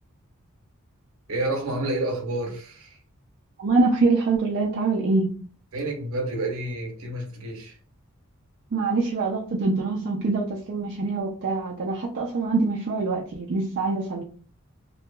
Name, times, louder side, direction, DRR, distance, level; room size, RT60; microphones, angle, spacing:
voice 1, 1.3-2.9 5.7-7.8, right 2 dB, 80° right, 0.8 m, -29 dB
voice 2, 3.6-5.3 8.7-14.2, right 3 dB, 55° right, 0.4 m, -24 dB
2.7 x 2.3 x 2.2 m
head